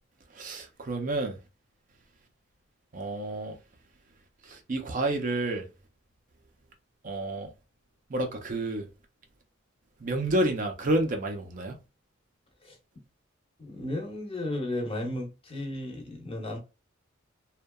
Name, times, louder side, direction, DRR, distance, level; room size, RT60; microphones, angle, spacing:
voice 1, 0.3-1.4 2.9-3.6 4.5-5.7 7.0-7.5 8.1-8.9 10.0-11.8, right 1 dB, 40° right, 0.4 m, -29 dB
voice 2, 13.6-16.6, left 1 dB, 30° left, 0.7 m, -34 dB
2.7 x 2.1 x 2.2 m
head